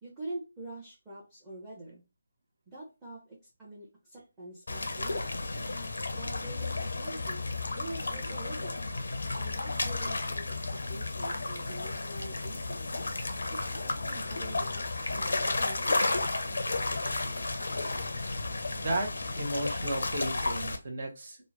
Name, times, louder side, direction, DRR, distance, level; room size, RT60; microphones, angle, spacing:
voice 1, 0.0-2.0 2.7-5.5 6.1-8.8 9.4-10.4 10.9-12.9 13.5-16.3, right 1 dB, 10° right, -7 dB, 0.7 m, -45 dB
sound 1, 4.7-20.8, left 2 dB, 60° left, 0.5 m, -33 dB
voice 2, 18.8-21.4, right 1 dB, 45° right, 3 dB, 0.7 m, -34 dB
2.8 x 2.0 x 2.7 m, 0.28 s
figure-of-eight pair, 150°, 0 cm